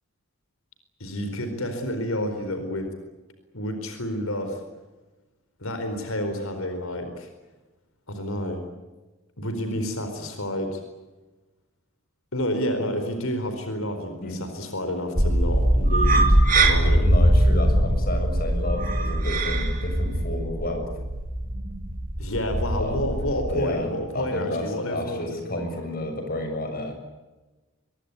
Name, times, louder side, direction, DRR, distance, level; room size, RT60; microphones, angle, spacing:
voice 1, 1.0-2.9 3.5-4.6 5.6-7.3 8.1-8.6 9.4-10.8 12.3-17.1 22.2-25.7, equal, 90° left, 7 dB, 4.4 m, -29 dB
sound 1, 15.1-23.6, right 1 dB, 40° right, 3.3 m, -21 dB
voice 2, 17.0-20.9 22.8-23.0 23.5-26.9, left 1 dB, 45° left, 5 dB, 6.7 m, -31 dB
23.5 x 22.5 x 9.6 m, 1.2 s
head